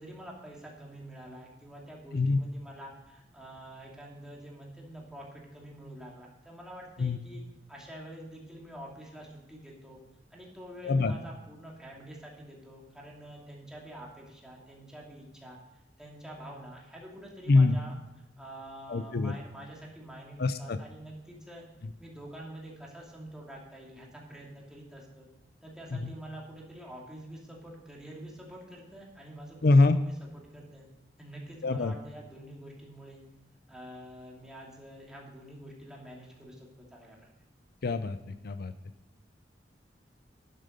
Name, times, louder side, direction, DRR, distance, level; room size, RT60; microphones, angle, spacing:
voice 1, 0.0-7.4 7.7-10.0 10.3-15.6 16.0-17.9 18.4-21.6 22.0-25.3 25.6-30.9 31.2-33.2 33.7-37.3, right 1 dB, 5° right, -3 dB, 2.6 m, -47 dB
voice 2, 17.5-17.8 18.9-19.3 20.4-20.8 25.9-26.1 29.6-30.0 31.6-31.9 37.8-38.7, left 3 dB, 60° left, 11 dB, 0.5 m, -24 dB
12.0 x 7.6 x 5.1 m, 0.94 s
head